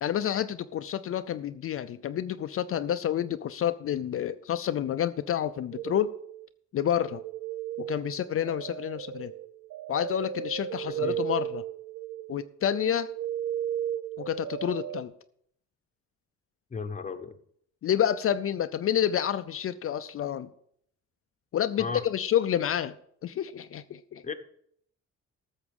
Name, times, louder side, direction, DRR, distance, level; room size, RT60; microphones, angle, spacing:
voice 1, 0.0-6.1 6.7-7.2 7.8-9.3 9.9-11.6 12.3-13.1 14.2-15.1 17.8-20.5 21.5-24.2, left 10 dB, 50° left, 11 dB, 0.4 m, -29 dB
sound 1, 5.7-6.5 7.0-15.0, right 11 dB, 60° right, 0.5 m, -35 dB
voice 2, 10.8-11.2 16.7-17.3 21.8-22.0 24.2-24.3, left 5 dB, 25° left, 9 dB, 0.9 m, -35 dB
13.5 x 7.2 x 5.3 m, 0.68 s
wide cardioid pair, 165°, 30 cm